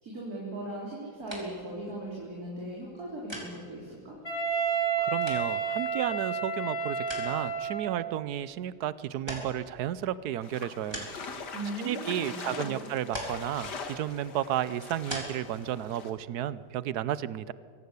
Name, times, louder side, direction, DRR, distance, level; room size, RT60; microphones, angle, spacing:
voice 1, 0.0-4.2 11.5-12.8, right 1 dB, 50° right, -4 dB, 4.1 m, -38 dB
sound 1, 1.2-16.9, equal, 15° right, 3.9 m, -45 dB
Wind instrument woodwind instrument, 4.2-8.1, right 5 dB, 45° left, 7.3 m, -30 dB
voice 2, 5.0-11.1 11.8-17.5, right 11 dB, 65° right, 17 dB, 1.1 m, -33 dB
sound 2, 10.4-16.1, left 4 dB, 60° left, 2.2 m, -42 dB
24.0 x 17.0 x 8.2 m, 2.3 s
omnidirectional pair, 2.1 m